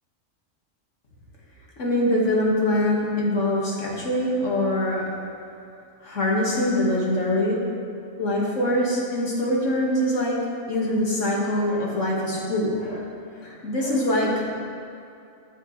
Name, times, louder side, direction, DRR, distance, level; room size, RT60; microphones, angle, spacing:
voice 1, 1.8-5.0 6.0-7.6 8.2-10.4 10.7-13.2 13.4-14.4, left 1 dB, 65° left, -4 dB, 2.1 m, -23 dB
14.0 x 6.7 x 3.2 m, 2.6 s
omnidirectional pair, 1.4 m